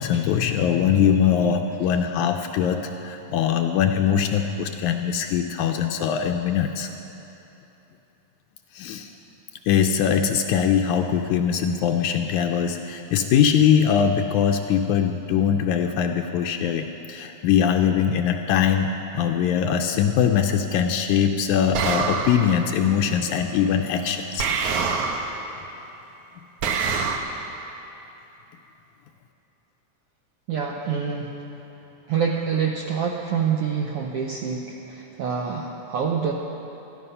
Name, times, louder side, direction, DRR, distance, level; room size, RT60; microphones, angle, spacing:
voice 1, 0.0-6.9 8.8-9.1 9.7-24.5, left 8 dB, 80° left, 4 dB, 1.9 m, -22 dB
sound 1, 21.7-22.6 24.4-25.4 26.6-27.2, right 5 dB, 70° right, 1.5 m, -25 dB
voice 2, 30.5-31.3 32.1-36.3, right 6 dB, 85° right, 0 dB, 1.3 m, -26 dB
14.0 x 12.5 x 5.5 m, 3.0 s
omnidirectional pair, 3.6 m